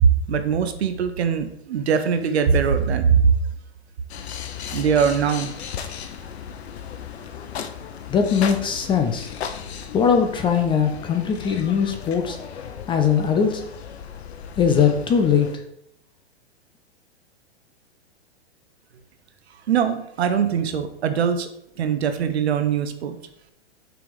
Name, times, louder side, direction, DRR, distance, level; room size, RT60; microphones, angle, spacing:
voice 1, 0.0-3.2 4.7-5.5 19.7-21.5 21.8-23.2, right 7 dB, 70° right, 10 dB, 0.9 m, -21 dB
sound 1, 4.1-15.6, left 8 dB, 70° left, 0.8 m, -36 dB
voice 2, 8.1-9.3 9.9-12.4 12.9-13.6 14.6-15.5, left 7 dB, 15° left, 5 dB, 0.4 m, -20 dB
6.0 x 3.4 x 4.8 m, 0.75 s
hypercardioid pair, 110°, 34 cm